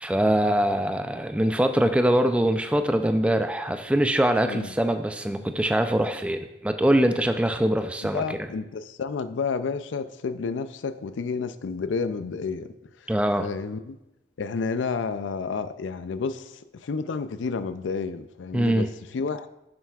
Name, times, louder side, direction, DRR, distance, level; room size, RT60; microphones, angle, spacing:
voice 1, 0.0-8.2 13.1-13.5 18.5-18.9, right 1 dB, 5° right, 0.4 m, -23 dB
voice 2, 8.1-12.7 13.0-13.1 13.4-14.0 14.4-19.5, left 5 dB, 90° left, 0.4 m, -30 dB
10.0 x 7.6 x 2.4 m
head